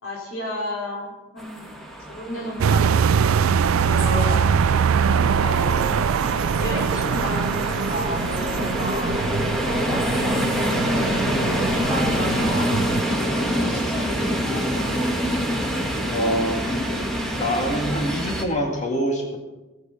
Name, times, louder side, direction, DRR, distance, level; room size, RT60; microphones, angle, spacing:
voice 1, 0.0-1.8 2.1-4.7 5.4-6.1 6.6-9.2 9.6-15.1, left 2 dB, 80° left, -3 dB, 3.4 m, -33 dB
sound 1, 1.4-18.4, equal, ahead, 1.5 m, -26 dB
sound 2, 2.6-13.0, right 6 dB, 85° right, 0.4 m, -23 dB
voice 2, 5.1-5.4 16.1-16.8 17.4-19.4, equal, 35° left, 1 dB, 2.0 m, -25 dB
18.0 x 7.9 x 5.4 m, 1.1 s
head